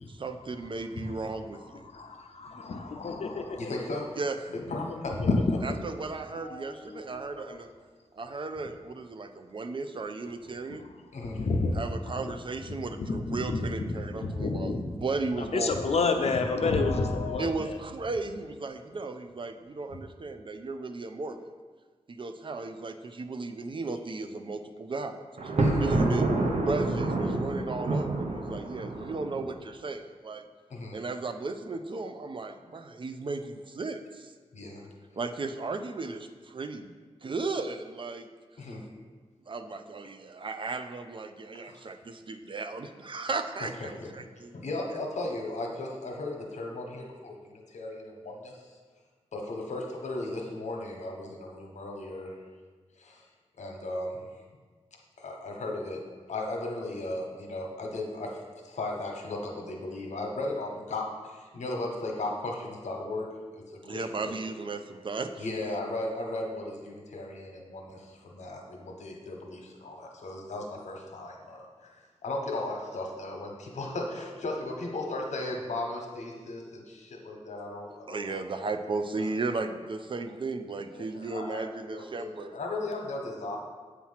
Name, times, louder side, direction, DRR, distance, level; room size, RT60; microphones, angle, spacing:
voice 1, 0.0-1.9 4.2-4.3 5.6-7.7 8.1-10.9 11.7-15.8 17.4-21.4 22.1-26.3 26.6-30.4 30.9-34.3 35.1-38.3 39.5-44.5 63.8-65.4 78.1-82.5, right 3 dB, 45° right, 7 dB, 0.5 m, -35 dB
voice 2, 1.9-3.6 5.1-5.6 6.4-7.6 11.2-11.7 13.0-13.7 14.2-14.9 15.5-17.8, left 3 dB, 60° left, 5 dB, 0.7 m, -29 dB
voice 3, 3.6-4.1 4.5-5.3 11.1-11.4 25.5-25.8 30.7-31.0 34.5-34.9 38.6-38.8 41.7-41.8 44.5-48.8 49.3-52.4 53.0-53.2 53.6-54.3 55.2-56.0 56.3-63.3 63.7-64.3 65.4-72.0 72.2-78.2 78.6-78.7 79.2-79.3 80.9-83.6, left 2 dB, 75° left, 0 dB, 1.1 m, -36 dB
Thunder, 25.4-29.5, right 2 dB, 65° right, 0.9 m, -28 dB
8.2 x 3.0 x 5.7 m, 1.4 s
wide cardioid pair, 85°, 12 cm